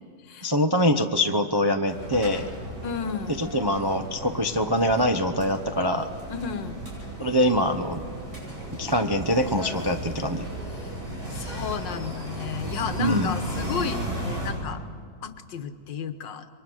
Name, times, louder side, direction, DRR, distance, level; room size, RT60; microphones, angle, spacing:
voice 1, 0.4-2.4 3.4-6.1 7.2-8.0 8.8-10.5 13.0-13.3, equal, 30° right, 6 dB, 0.4 m, -24 dB
sound 1, 1.9-14.5, right 1 dB, 55° right, 8.6 m, -35 dB
voice 2, 2.8-3.4 6.3-6.8 10.8-10.9 11.3-14.8 15.2-16.5, left 7 dB, 80° left, 9 dB, 1.8 m, -33 dB
28.0 x 23.5 x 6.4 m, 2.1 s
omnidirectional pair, 1.9 m